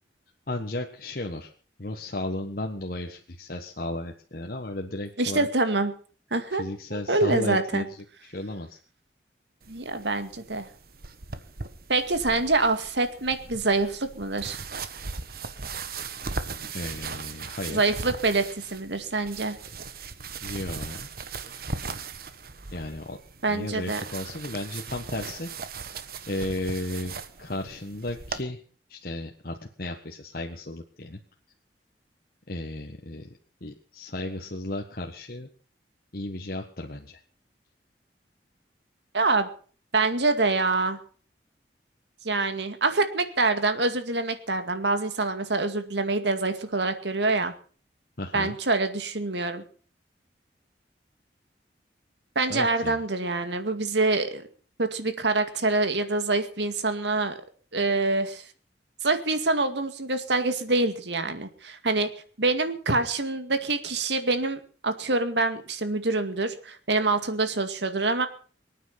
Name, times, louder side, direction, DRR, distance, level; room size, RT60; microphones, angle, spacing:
voice 1, 0.5-1.5 1.8-5.5 6.5-8.8 16.7-17.8 20.4-21.1 22.7-23.2 23.5-25.5 26.3-28.6 28.9-31.2 32.5-33.3 33.6-35.5 36.1-37.2 48.2-48.6 52.5-53.0, left 1 dB, 55° left, 2 dB, 1.5 m, -34 dB
voice 2, 5.2-5.9 6.3-6.6 6.9-7.8 9.7-10.7 11.9-14.6 17.7-19.6 23.4-24.0 39.1-39.5 39.9-41.0 42.2-47.5 48.3-49.6 52.4-54.5 54.8-57.4 57.7-58.4 59.0-62.1 62.4-68.3, right 3 dB, 80° right, 8 dB, 2.2 m, -25 dB
sound 1, 9.6-28.4, right 4 dB, 55° right, 1.4 m, -39 dB
24.0 x 9.4 x 5.9 m, 0.43 s
head